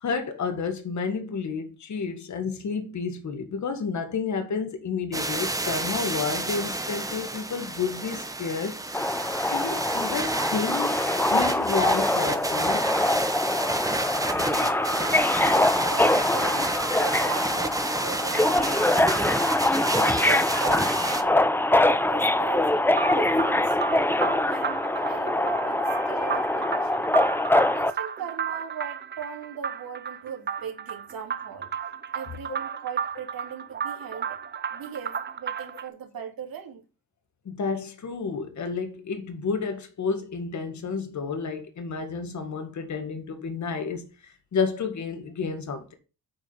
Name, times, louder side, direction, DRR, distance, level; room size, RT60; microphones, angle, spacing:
voice 1, 0.0-8.8 9.5-11.0 11.3-12.9 37.5-44.1 44.5-45.9, left 5 dB, 50° left, 1.8 m, -30 dB
sound 1, 5.1-21.2, right 2 dB, 10° right, 1.2 m, -30 dB
Subway metro underground, 8.9-27.9, left 1 dB, 5° left, 0.5 m, -24 dB
voice 2, 14.4-19.1 19.9-22.9 23.1-27.2 27.7-31.7 32.1-34.4 34.7-36.8, right 8 dB, 65° right, 2.6 m, -39 dB
sound 2, 22.9-35.9, right 7 dB, 30° right, 0.7 m, -34 dB
8.6 x 5.0 x 5.5 m
cardioid pair, 95°, 37 cm